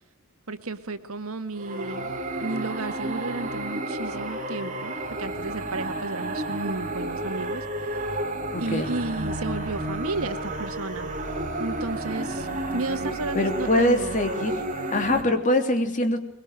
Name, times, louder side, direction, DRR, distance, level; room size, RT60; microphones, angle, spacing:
voice 1, 0.5-2.1 2.4-7.7 7.9-8.0 8.6-11.1 11.6-12.5 12.7-14.2, right 2 dB, 75° right, 10 dB, 1.9 m, -32 dB
sound 1, 1.6-15.2, right 1 dB, 35° right, 3.6 m, -31 dB
voice 2, 8.5-8.9 13.3-14.5 14.9-16.2, left 1 dB, 35° left, 6 dB, 3.2 m, -23 dB
23.5 x 21.5 x 9.1 m, 0.65 s
head